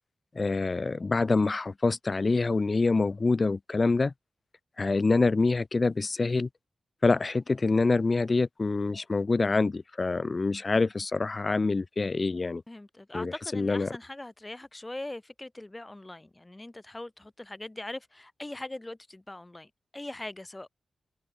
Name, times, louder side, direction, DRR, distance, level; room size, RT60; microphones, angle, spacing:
voice 1, 0.3-4.1 4.8-6.5 7.0-12.6 13.1-13.9, left 3 dB, 30° left, 0.8 m, -26 dB
voice 2, 12.7-20.7, left 2 dB, 15° left, 3.2 m, -41 dB
wide cardioid pair, 150°, 0 cm